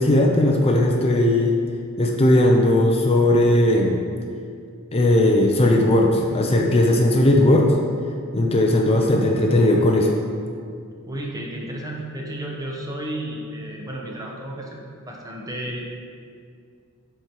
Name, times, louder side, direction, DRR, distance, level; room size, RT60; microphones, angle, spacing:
voice 1, 0.0-1.6 2.0-4.0 4.9-7.7 8.3-10.1, left 1 dB, 30° left, 1 dB, 0.6 m, -17 dB
voice 2, 11.1-14.8 15.1-15.9, right 1 dB, 15° right, -1 dB, 0.9 m, -32 dB
8.1 x 4.4 x 4.7 m, 2.2 s
head